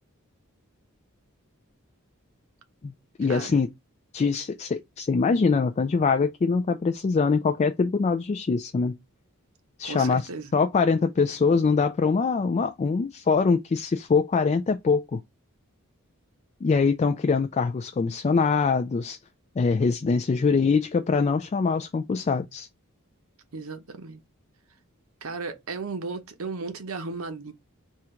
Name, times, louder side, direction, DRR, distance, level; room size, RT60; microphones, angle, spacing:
voice 1, 3.2-3.7 4.1-9.0 9.8-15.2 16.6-19.2 19.6-22.7, left 4 dB, 30° left, 0.3 m, -23 dB
voice 2, 9.8-10.5 23.5-24.2 25.2-27.5, right 4 dB, 70° right, 0.8 m, -35 dB
3.7 x 2.9 x 4.3 m
head